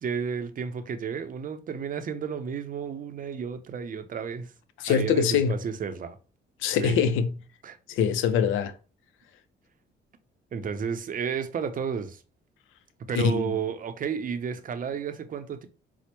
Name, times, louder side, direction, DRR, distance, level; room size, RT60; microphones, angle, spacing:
voice 1, 0.0-4.5 4.9-6.2 6.8-7.0 7.6-7.8 10.5-12.2 13.1-15.7, right 6 dB, 45° right, 0.5 m, -32 dB
voice 2, 4.8-5.5 6.6-7.3 7.9-8.7 13.2-13.5, left 7 dB, 90° left, 0.4 m, -23 dB
4.4 x 2.0 x 2.9 m
cardioid pair, 90°, 20 cm